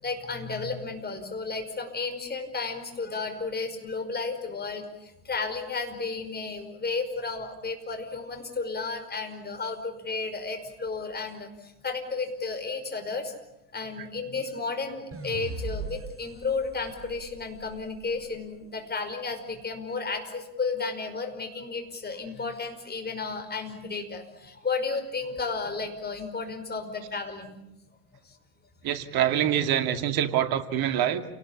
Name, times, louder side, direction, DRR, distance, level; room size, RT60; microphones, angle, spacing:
voice 1, 0.0-13.3 13.7-27.6, left 4 dB, 20° left, 6 dB, 5.4 m, -33 dB
sound 1, 15.1-18.4, right 3 dB, 30° right, 6.3 m, -39 dB
voice 2, 28.8-31.2, right 10 dB, 50° right, 9 dB, 2.4 m, -25 dB
29.0 x 19.5 x 8.7 m, 0.87 s
hypercardioid pair, 85°, 45 cm